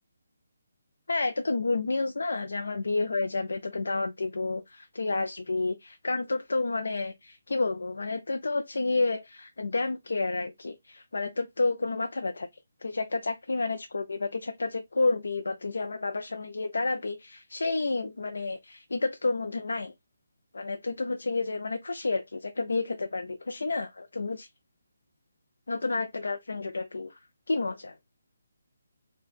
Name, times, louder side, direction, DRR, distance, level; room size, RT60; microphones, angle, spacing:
voice 1, 1.1-12.5 12.8-19.9 20.5-24.5 25.7-27.2 27.5-28.0, left 3 dB, 90° left, 0.5 m, -30 dB
4.6 x 2.3 x 4.1 m
hypercardioid pair, 165°, 0 cm